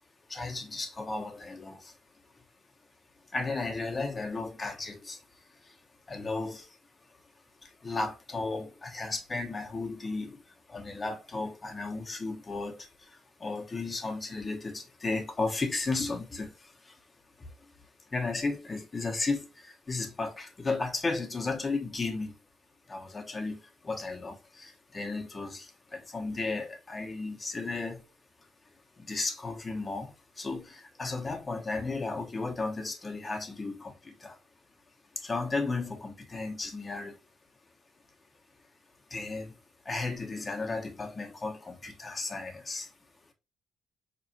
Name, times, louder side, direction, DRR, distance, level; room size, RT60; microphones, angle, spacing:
voice 1, 0.3-2.0 3.3-5.8 6.1-6.8 7.6-17.0 17.4-17.5 18.1-22.4 22.9-28.0 29.0-34.4 35.1-37.2 39.1-39.6 39.8-42.9, left 3 dB, 30° left, 0.9 m, -34 dB
4.1 x 3.0 x 2.6 m
cardioid pair, 90°, 0 cm